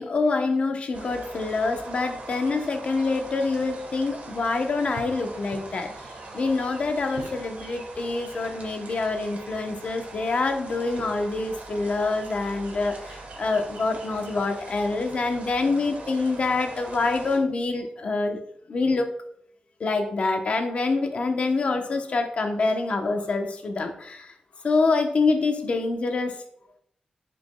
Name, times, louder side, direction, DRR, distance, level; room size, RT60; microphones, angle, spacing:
voice 1, 0.0-5.9 6.3-18.4 18.7-19.1 19.8-24.3 24.6-26.4, left 3 dB, 50° left, 5 dB, 0.9 m, -26 dB
sound 1, 0.9-17.4, right 2 dB, 70° right, 1.7 m, -41 dB
10.5 x 5.1 x 2.3 m, 0.69 s
wide cardioid pair, 170°, 3 cm